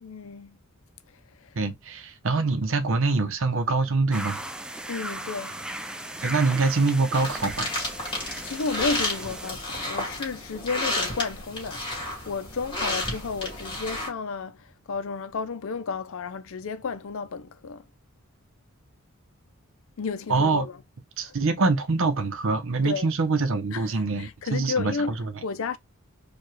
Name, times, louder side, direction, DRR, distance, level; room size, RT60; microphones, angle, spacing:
voice 1, 0.0-0.6 1.1-1.6 4.9-5.7 8.4-11.9 12.3-17.9 20.0-20.8 21.2-21.3 22.8-23.1 23.7-23.9 24.2-25.2 25.4-25.8, left 4 dB, 70° left, 0.5 m, -32 dB
voice 2, 1.6-4.4 6.2-7.7 20.3-20.7 21.2-24.9 25.2-25.3, right 3 dB, 65° right, 0.7 m, -24 dB
sound 1, 4.1-9.5, right 1 dB, 5° right, 0.4 m, -37 dB
sound 2, 7.1-14.1, left 1 dB, 25° left, 2.1 m, -32 dB
4.7 x 2.4 x 3.1 m
head